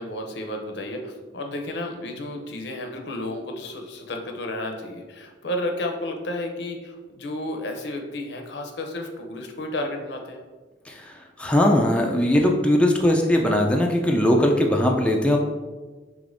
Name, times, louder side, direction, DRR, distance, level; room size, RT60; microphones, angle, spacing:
voice 1, 0.0-10.4, left 1 dB, 80° left, 3 dB, 0.6 m, -32 dB
voice 2, 10.9-15.4, left 1 dB, 5° left, 0 dB, 0.3 m, -20 dB
5.0 x 3.3 x 2.6 m, 1.3 s
head